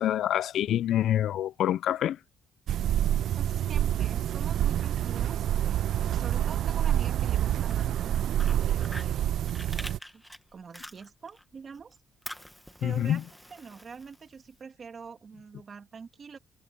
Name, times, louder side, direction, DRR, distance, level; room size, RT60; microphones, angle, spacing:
voice 1, 0.0-2.2 12.8-13.2, left 11 dB, 50° left, 0.3 m, -26 dB
sound 1, 2.7-10.0, right 11 dB, 50° right, 0.3 m, -27 dB
voice 2, 3.4-5.9 6.1-9.4 10.1-10.2 10.5-12.0 12.8-16.4, right 5 dB, 25° right, 2.3 m, -45 dB
Fire, 7.7-11.4 11.7-14.5, equal, ahead, 1.1 m, -46 dB
cardioid pair, 180°, 0 cm